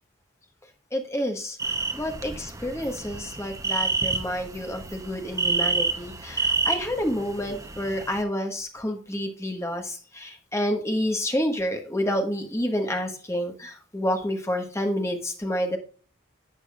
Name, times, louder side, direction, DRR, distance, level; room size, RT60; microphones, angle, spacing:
voice 1, 0.9-1.6 1.9-15.8, equal, 15° left, 4 dB, 1.5 m, -29 dB
sound 1, 1.6-8.2, right 4 dB, 15° right, 0.8 m, -29 dB
11.5 x 7.5 x 2.4 m, 0.39 s
head